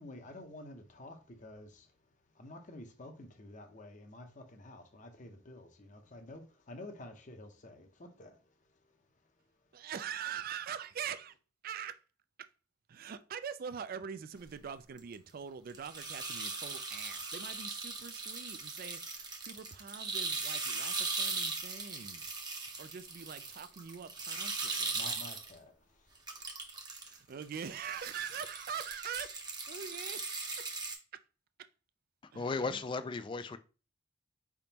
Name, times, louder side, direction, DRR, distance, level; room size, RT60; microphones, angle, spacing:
voice 1, 0.0-1.9 2.3-8.5 8.9-9.0 9.8-9.9 24.9-26.3, left 1 dB, 40° left, 0.7 m, -50 dB
voice 2, 9.7-11.3 11.6-12.0 12.4-12.5 12.9-22.3 22.8-25.0 27.0-30.7 31.1-31.2 31.6-31.7 32.3-32.8, right 7 dB, 50° right, 0.4 m, -43 dB
sound 1, 15.0-15.1 15.7-25.5 26.1-27.2 27.4-30.9, right 3 dB, 20° right, 0.8 m, -39 dB
voice 3, 32.3-33.6, left 3 dB, 25° left, 0.3 m, -35 dB
5.0 x 3.5 x 2.8 m
head